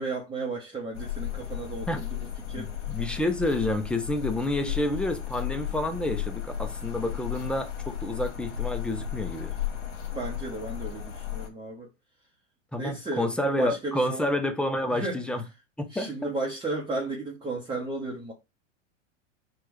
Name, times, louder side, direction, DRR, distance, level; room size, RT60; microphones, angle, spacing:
voice 1, 0.0-2.7 4.7-4.9 7.1-7.2 10.1-11.9 12.8-13.3 13.6-14.3 14.9-15.2 15.9-18.3, right 2 dB, 15° right, 0.9 m, -34 dB
sound 1, 0.9-11.5, left 11 dB, 70° left, 1.3 m, -34 dB
voice 2, 2.6-9.5 12.7-15.4 15.8-16.3, left 1 dB, 5° left, 0.6 m, -29 dB
4.5 x 2.5 x 4.6 m
hypercardioid pair, 100°, 37 cm